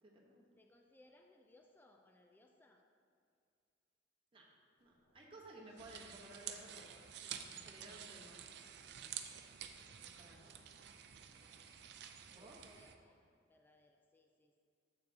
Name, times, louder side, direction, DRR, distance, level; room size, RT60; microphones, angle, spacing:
voice 1, 0.0-0.4 4.3-8.6 10.0-10.4 12.3-12.7, right 1 dB, 30° right, -3 dB, 1.0 m, -57 dB
voice 2, 0.6-2.9 12.3-14.6, left 1 dB, 10° left, 3 dB, 0.3 m, -67 dB
sound 1, 4.8-12.8, equal, 60° left, 1.3 m, -72 dB
sound 2, 5.8-12.9, right 9 dB, 60° right, 0.4 m, -50 dB
7.8 x 6.8 x 2.7 m, 2.4 s
head